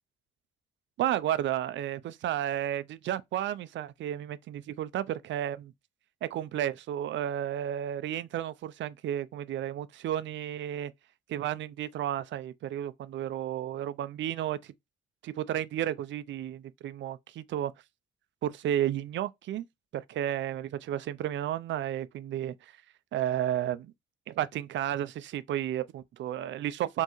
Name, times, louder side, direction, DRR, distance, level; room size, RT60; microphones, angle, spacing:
voice 1, 1.0-5.7 6.2-10.9 11.3-14.7 15.2-17.7 18.4-19.6 19.9-22.8 23.1-23.9 24.3-27.0, right 11 dB, 70° right, 0.5 m, -32 dB
4.5 x 3.0 x 3.0 m
cardioid pair, 90°, 20 cm